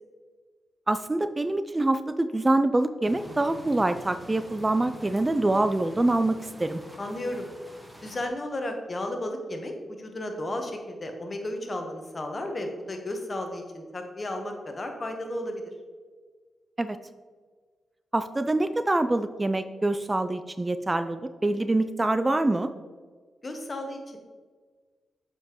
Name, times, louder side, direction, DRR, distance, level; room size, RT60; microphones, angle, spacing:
voice 1, 0.9-6.8 16.8-17.0 18.1-22.7, right 2 dB, 25° right, 11 dB, 0.3 m, -25 dB
sound 1, 3.0-8.3, equal, 10° right, 1.2 m, -46 dB
voice 2, 7.0-7.5 8.0-9.7 10.0-15.7 23.4-24.2, left 1 dB, 40° left, 4 dB, 1.1 m, -33 dB
7.2 x 5.3 x 3.0 m, 1.5 s
supercardioid pair, 50°, 0 cm